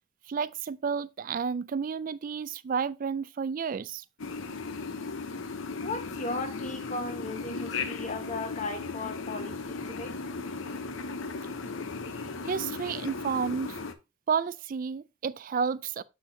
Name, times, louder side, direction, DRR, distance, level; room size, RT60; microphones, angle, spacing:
voice 1, 0.3-4.0 12.5-13.8 14.3-16.0, right 6 dB, 45° right, 0.3 m, -31 dB
sound 1, 4.2-13.9, left 4 dB, 75° left, 0.8 m, -36 dB
voice 2, 5.7-10.2 12.2-12.3, left 2 dB, 35° left, 1.2 m, -36 dB
7.9 x 6.2 x 2.7 m
head